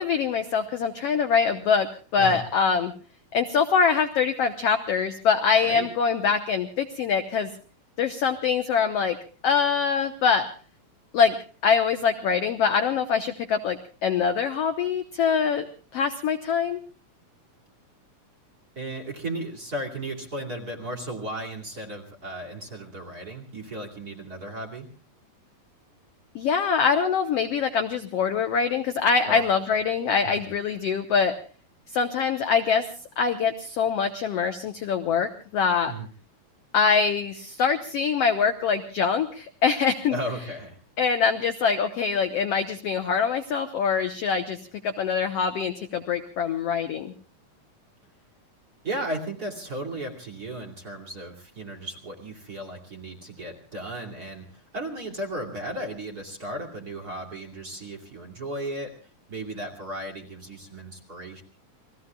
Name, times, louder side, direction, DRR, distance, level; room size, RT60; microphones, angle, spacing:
voice 1, 0.0-1.9 2.1-2.9 3.3-7.5 8.0-9.2 9.4-10.5 11.1-11.3 11.6-15.7 15.9-16.8 26.3-31.3 31.9-32.8 33.2-35.9 36.7-40.2 41.0-44.6 44.8-47.1, left 6 dB, 70° left, 7 dB, 1.5 m, -24 dB
voice 2, 18.8-24.9 29.2-29.4 30.2-30.5 35.8-36.1 40.1-40.8 48.8-59.0 59.3-61.4, right 1 dB, 30° right, 2 dB, 2.6 m, -35 dB
29.5 x 21.0 x 2.3 m, 0.38 s
omnidirectional pair, 4.1 m